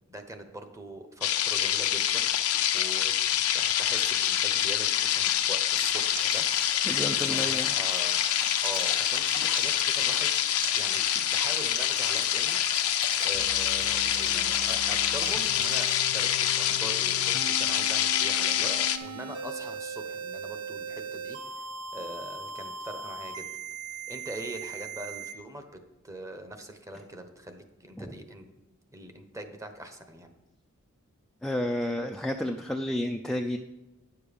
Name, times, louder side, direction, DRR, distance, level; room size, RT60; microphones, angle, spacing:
voice 1, 0.1-6.5 6.9-8.2 8.5-10.3 10.7-21.7 21.9-23.5 23.9-28.5 28.9-30.3, right 1 dB, 15° right, 6 dB, 1.0 m, -42 dB
sound 1, 1.2-19.0, left 11 dB, 90° left, 0.7 m, -26 dB
Stream, 5.9-16.0, right 6 dB, 40° right, 0.7 m, -41 dB
voice 2, 6.9-7.7 28.0-28.1 31.4-33.6, left 1 dB, ahead, 3 dB, 0.4 m, -31 dB
sound 2, 13.3-25.3, right 3 dB, 90° right, 1.1 m, -40 dB
10.0 x 6.8 x 5.2 m, 1.0 s
head